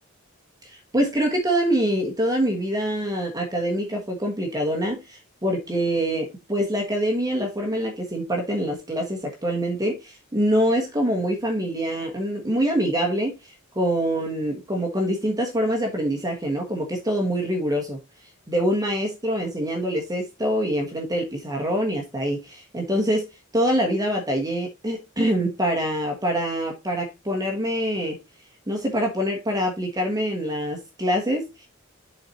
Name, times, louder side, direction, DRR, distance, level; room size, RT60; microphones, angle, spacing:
voice 1, 0.6-13.3 13.7-18.0 18.5-23.3 23.5-28.2 28.7-31.7, equal, 20° right, 1.3 m, -25 dB
7.5 x 4.4 x 4.2 m
head